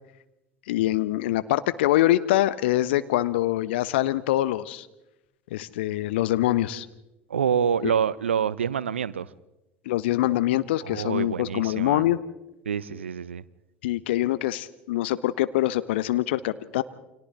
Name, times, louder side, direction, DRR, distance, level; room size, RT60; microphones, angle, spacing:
voice 1, 0.7-4.9 5.5-6.9 7.8-7.9 9.9-12.2 13.8-16.8, left 15 dB, 65° left, 15 dB, 1.0 m, -24 dB
voice 2, 7.3-9.3 10.8-12.0 12.7-13.4, right 7 dB, 80° right, 20 dB, 0.7 m, -26 dB
29.0 x 25.5 x 3.7 m, 0.95 s
figure-of-eight pair, 65°, 6 cm